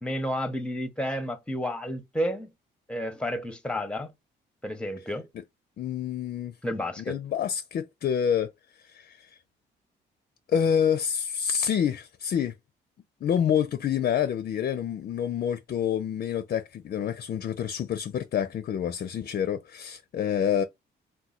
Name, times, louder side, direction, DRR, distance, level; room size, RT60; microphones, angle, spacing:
voice 1, 0.0-2.5 2.9-4.1 4.6-5.3 6.6-7.2, equal, 5° left, 0.7 m, -31 dB
voice 2, 5.8-6.5 7.0-8.5 8.8-9.4 10.5-12.5 13.2-20.6, left 8 dB, 50° left, 0.4 m, -27 dB
2.9 x 2.2 x 3.8 m
cardioid pair, 90°, 20 cm